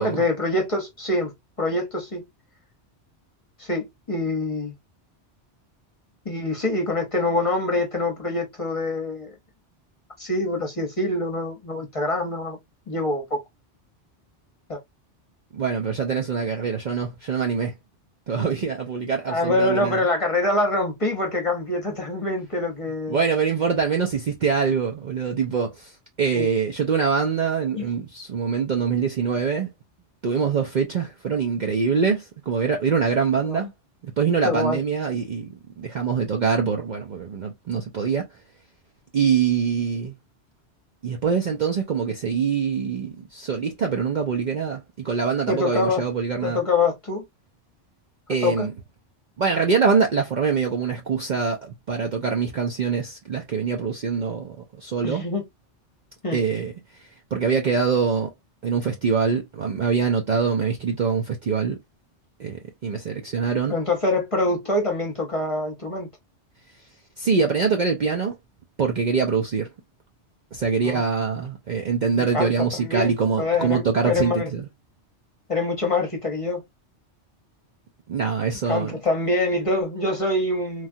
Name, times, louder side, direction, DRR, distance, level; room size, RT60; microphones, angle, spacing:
voice 1, 0.0-1.3 1.6-2.2 3.6-4.7 6.2-9.3 10.2-12.6 12.9-13.4 14.7-14.8 19.3-23.2 26.3-26.5 27.7-27.9 33.4-33.6 34.4-34.8 45.5-46.0 46.4-47.3 48.4-48.7 55.0-55.4 56.2-56.4 63.7-66.1 70.8-71.0 72.2-74.5 75.5-76.6 78.7-80.9, left 2 dB, 30° left, 0.8 m, -25 dB
voice 2, 15.5-17.7 18.3-20.0 23.1-29.7 30.2-33.7 34.0-35.5 35.8-38.3 39.1-40.1 41.0-46.6 48.3-48.7 49.4-55.2 56.3-56.7 57.3-58.3 58.6-61.8 62.4-63.7 67.2-68.4 68.8-69.7 70.5-74.6 78.1-79.0, right 6 dB, 55° right, 0.6 m, -24 dB
3.3 x 2.3 x 2.6 m
omnidirectional pair, 1.2 m